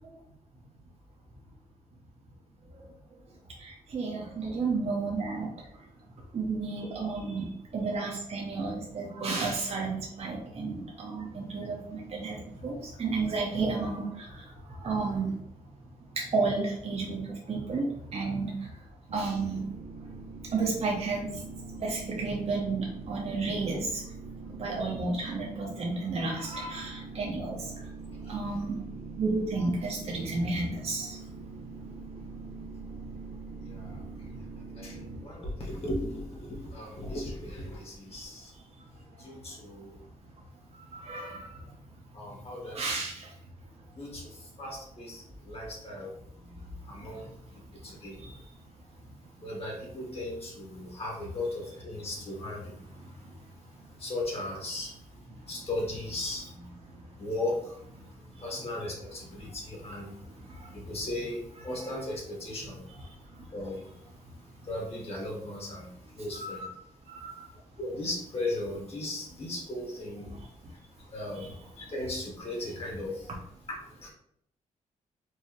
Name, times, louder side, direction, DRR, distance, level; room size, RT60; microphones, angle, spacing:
voice 1, 3.6-5.5 6.3-15.4 16.1-18.7 19.1-19.6 20.5-21.3 21.8-24.0 24.6-27.9 28.3-28.8 29.2-31.2 40.7-41.6 42.7-43.3 46.5-46.6 48.2-48.4 56.2-56.3 60.4-60.7 63.4-63.5 66.4-66.6 67.1-67.4 70.4-70.5, right 3 dB, 45° right, -2 dB, 0.9 m, -32 dB
sound 1, 19.1-35.3, right 3 dB, 80° right, 0.6 m, -43 dB
voice 2, 33.6-34.0 34.5-38.5 39.2-40.0 42.1-42.8 43.9-46.2 46.9-48.2 49.4-52.8 54.0-54.9 55.5-56.5 57.2-57.8 58.4-60.1 60.7-62.8 63.5-64.0 64.6-66.7 67.8-70.3 70.7-73.3 73.9-74.1, left 1 dB, 45° left, -2 dB, 1.5 m, -37 dB
4.6 x 2.7 x 3.1 m, 0.71 s
cardioid pair, 105°, 15 cm